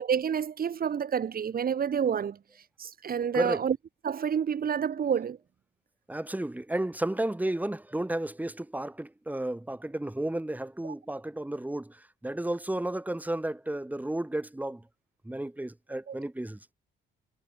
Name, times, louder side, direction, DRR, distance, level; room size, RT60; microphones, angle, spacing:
voice 1, 0.0-2.4 2.8-3.8 4.0-5.4 16.1-16.2, right 7 dB, 45° right, 1.8 m, -28 dB
voice 2, 3.3-3.7 6.1-14.8 15.2-16.6, right 1 dB, 10° right, 3.3 m, -32 dB
cardioid pair, 90°, 20 cm